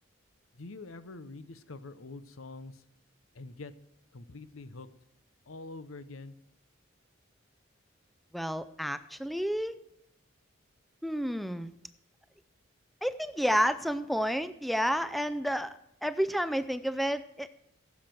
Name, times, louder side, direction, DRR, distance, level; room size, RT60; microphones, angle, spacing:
voice 1, 0.6-2.8 3.3-3.7 4.1-4.9 5.5-6.3, left 3 dB, 85° left, 14 dB, 0.9 m, -45 dB
voice 2, 8.3-9.8 11.0-11.7 13.0-17.5, equal, ahead, 13 dB, 0.4 m, -30 dB
16.5 x 7.3 x 7.7 m, 0.79 s
head